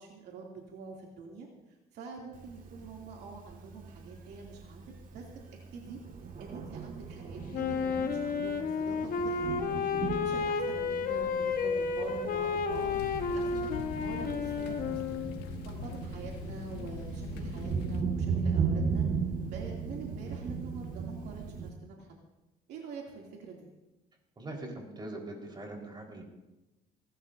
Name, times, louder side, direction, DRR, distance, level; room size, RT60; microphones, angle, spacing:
voice 1, 0.0-1.5 1.9-5.3 5.7-6.0 6.4-9.8 10.2-12.9 13.3-15.3 15.6-19.1 19.4-22.1 22.7-23.7, right 4 dB, 80° right, -1 dB, 2.8 m, -46 dB
Thunder, 2.3-21.7, right 5 dB, 55° right, 2.0 m, -37 dB
Wind instrument woodwind instrument, 7.5-15.5, left 5 dB, 55° left, 1.3 m, -32 dB
sound 1, 12.7-18.0, left 7 dB, 90° left, 1.5 m, -42 dB
voice 2, 24.4-26.2, right 2 dB, 25° right, 1 dB, 4.5 m, -42 dB
29.5 x 12.0 x 2.7 m, 1.0 s
cardioid pair, 110°, 17 cm